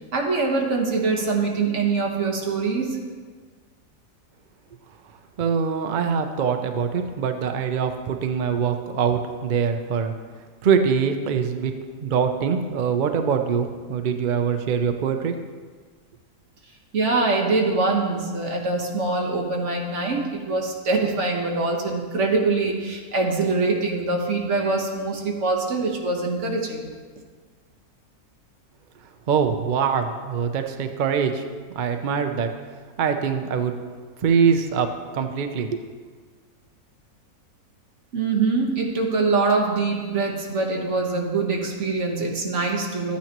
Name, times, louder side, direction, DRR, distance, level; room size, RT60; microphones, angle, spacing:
voice 1, 0.1-3.0 16.9-26.9 38.1-43.2, right 3 dB, 50° right, 0 dB, 1.5 m, -24 dB
voice 2, 5.4-10.1 10.6-11.7 12.0-15.3 29.3-31.4 31.7-32.5 33.0-33.8 34.2-35.8, right 6 dB, 75° right, 6 dB, 0.4 m, -23 dB
12.5 x 8.6 x 3.0 m, 1.5 s
omnidirectional pair, 1.6 m